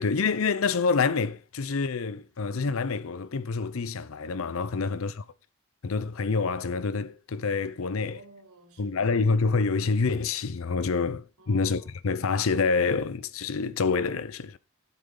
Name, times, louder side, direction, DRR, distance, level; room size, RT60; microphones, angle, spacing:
voice 1, 0.0-5.1 5.8-8.2 8.8-14.6, left 4 dB, 75° left, 0.6 m, -27 dB
voice 2, 7.9-9.1 11.4-11.9, right 2 dB, 90° right, 3.9 m, -53 dB
13.0 x 8.3 x 3.8 m
head